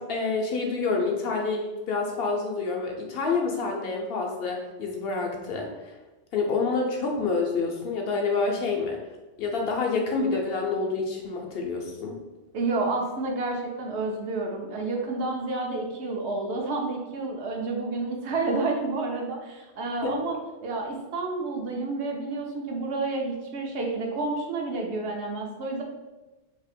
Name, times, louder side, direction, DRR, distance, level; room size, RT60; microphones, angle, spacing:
voice 1, 0.0-5.9 6.3-9.0 9.4-12.1 20.0-20.1, left 4 dB, 65° left, 1 dB, 0.7 m, -28 dB
voice 2, 12.5-20.4 20.6-25.8, right 3 dB, 70° right, 1 dB, 0.9 m, -30 dB
2.7 x 2.4 x 4.2 m, 1.1 s
omnidirectional pair, 1.2 m